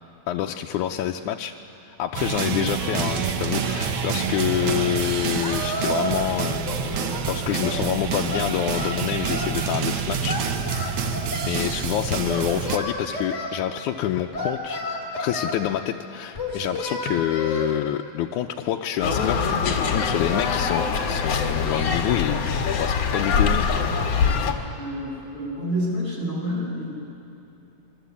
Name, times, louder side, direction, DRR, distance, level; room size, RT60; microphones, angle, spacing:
voice 1, 0.3-1.5 1.8-10.7 11.2-14.8 15.2-23.7, left 11 dB, 85° left, 2 dB, 2.1 m, -27 dB
sound 1, 2.1-12.8, right 6 dB, 60° right, 1.4 m, -27 dB
Singing, 5.4-6.3 6.6-7.8 8.3-9.6 10.3-11.6 12.3-13.5 14.3-15.6 16.3-17.7, equal, 25° left, 3.9 m, -31 dB
sound 2, 19.0-24.5, left 5 dB, 60° left, 2.5 m, -23 dB
voice 2, 24.7-26.9, equal, 15° right, -4 dB, 7.4 m, -28 dB
25.0 x 23.0 x 8.3 m, 2.8 s
omnidirectional pair, 3.4 m